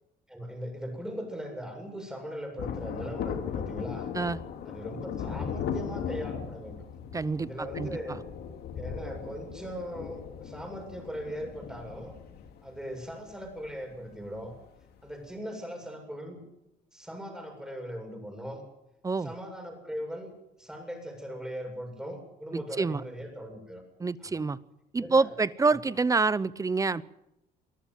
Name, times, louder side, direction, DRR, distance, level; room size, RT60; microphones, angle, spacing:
voice 1, 0.3-4.1 4.6-6.8 7.4-8.2 8.8-12.1 12.6-14.5 15.0-16.4 16.9-18.6 19.2-20.3 20.6-23.8 24.2-24.4 25.0-25.3 25.7-25.8, equal, 5° right, 3 dB, 7.4 m, -39 dB
Thunder, 2.6-14.6 14.8-14.9, left 7 dB, 70° left, 2.4 m, -37 dB
voice 2, 7.1-7.5 7.8-8.2 19.0-19.3 22.5-23.0 24.0-24.6 24.9-27.0, right 4 dB, 20° right, 18 dB, 0.7 m, -27 dB
23.5 x 14.5 x 7.7 m, 0.87 s
cardioid pair, 110°, 17 cm